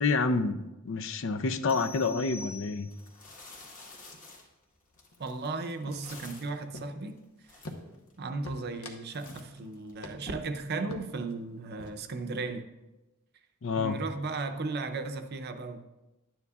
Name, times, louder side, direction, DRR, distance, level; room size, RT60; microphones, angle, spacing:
voice 1, 0.0-2.9 13.6-14.0, left 4 dB, 65° left, 11 dB, 0.5 m, -28 dB
sound 1, 1.7-3.3, left 3 dB, 10° left, 1.3 m, -46 dB
sound 2, 2.3-2.4 2.9-6.6 7.2-7.3 7.4-8.1 8.6-8.9 9.1-10.3, left 3 dB, 40° left, 1.7 m, -50 dB
sound 3, 3.5-3.8 4.1-4.5 4.8-5.5 5.8-7.2 7.6-8.1 8.4-9.5 9.7-9.8 10.0-10.5 10.9-11.3 11.6-12.1, left 2 dB, 80° left, 1.0 m, -46 dB
voice 2, 5.2-7.2 8.2-12.7 13.8-15.8, right 3 dB, 50° right, 7 dB, 0.6 m, -35 dB
12.0 x 9.5 x 2.4 m, 1.0 s
head